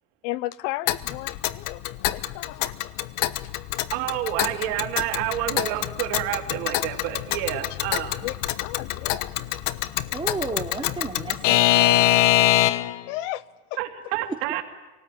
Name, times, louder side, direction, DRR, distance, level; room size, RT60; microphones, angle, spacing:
voice 1, 0.2-3.1 3.4-3.5 7.7-7.8 8.2-9.4 13.1-13.4 13.7-13.8, left 16 dB, 90° left, 0.9 m, -35 dB
Alarm / Clock, 0.9-13.0, left 15 dB, 70° left, 1.1 m, -24 dB
voice 2, 3.9-8.1 13.8-14.6, right 13 dB, 85° right, 2.6 m, -29 dB
voice 3, 10.1-12.5, right 3 dB, 15° right, 3.2 m, -33 dB
27.5 x 18.5 x 9.0 m
supercardioid pair, 115°, 35 cm